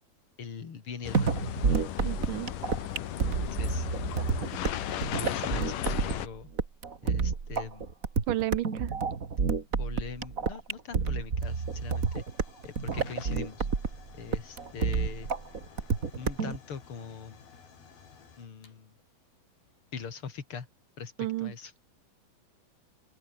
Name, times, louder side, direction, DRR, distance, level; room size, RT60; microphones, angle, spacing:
voice 1, 0.4-1.4 3.5-3.9 5.1-6.5 7.0-7.9 9.8-12.2 12.6-13.7 14.1-15.3 16.2-17.4 18.4-18.9 19.9-20.7 21.0-21.7, left 6 dB, 40° left, 3.2 m, -42 dB
sound 1, 1.0-6.3, left 11 dB, 65° left, 3.0 m, -35 dB
sound 2, 1.1-16.6, right 5 dB, 30° right, 1.6 m, -30 dB
voice 2, 2.0-2.5 8.3-8.9 21.2-21.5, right 15 dB, 75° right, 2.2 m, -32 dB
Hiss / Fire / Tick, 9.8-20.2, left 6 dB, 85° left, 6.3 m, -55 dB
open air
omnidirectional pair, 4.2 m